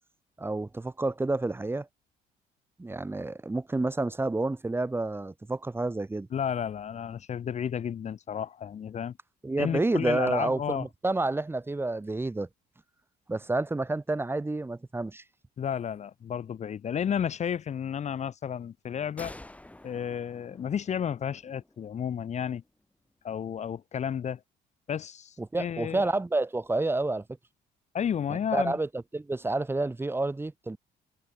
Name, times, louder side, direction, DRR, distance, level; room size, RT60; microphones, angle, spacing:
voice 1, 0.4-1.9 2.8-6.3 9.4-12.5 13.3-15.2 25.4-27.2 28.5-30.8, right 2 dB, 15° right, 1.9 m, -29 dB
voice 2, 6.3-9.2 9.6-10.9 15.6-19.3 19.8-22.6 23.2-24.4 24.9-26.1 27.9-28.7, left 8 dB, 45° left, 1.5 m, -32 dB
sound 1, 19.2-22.7, left 1 dB, 10° left, 5.0 m, -49 dB
cardioid pair, 110°, 17 cm